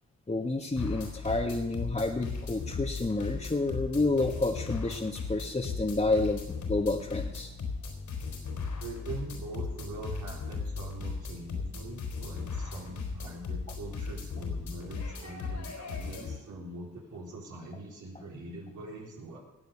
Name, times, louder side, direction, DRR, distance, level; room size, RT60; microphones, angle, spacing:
voice 1, 0.3-7.5, left 2 dB, 25° left, 0 dB, 1.5 m, -29 dB
sound 1, 0.8-16.4, left 4 dB, 75° left, 4.1 m, -37 dB
voice 2, 8.8-19.4, right 2 dB, 85° right, -3 dB, 4.0 m, -43 dB
19.0 x 8.0 x 6.9 m, 0.94 s
supercardioid pair, 50°, 30 cm